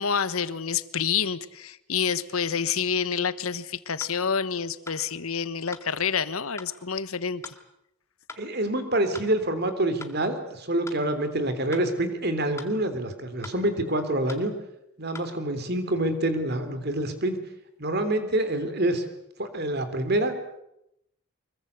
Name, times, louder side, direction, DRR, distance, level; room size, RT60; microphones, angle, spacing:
voice 1, 0.0-7.5, left 6 dB, 75° left, 15 dB, 1.2 m, -28 dB
sound 1, 4.0-4.2 4.9-5.0 5.7-5.9 6.6-6.7 7.4-7.6 8.3-8.5 9.1-9.3 10.0-10.2 10.9-11.0 11.7-11.9 12.6-12.7 13.4-13.6 14.3-14.5 15.1-15.3, left 3 dB, 15° left, 2.1 m, -41 dB
voice 2, 8.4-14.5 15.0-17.4 17.8-19.0 19.4-20.3, right 1 dB, 45° right, 9 dB, 3.3 m, -26 dB
24.5 x 22.5 x 8.2 m, 0.82 s
head